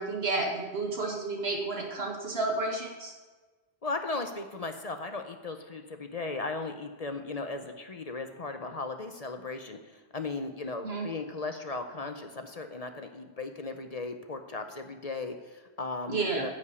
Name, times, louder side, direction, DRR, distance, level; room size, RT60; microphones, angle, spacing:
voice 1, 0.0-3.1 10.8-11.1 16.1-16.5, right 3 dB, 80° right, 0 dB, 2.0 m, -31 dB
voice 2, 3.8-16.5, left 3 dB, 40° left, 6 dB, 0.7 m, -37 dB
9.6 x 5.3 x 8.3 m, 1.3 s
omnidirectional pair, 1.1 m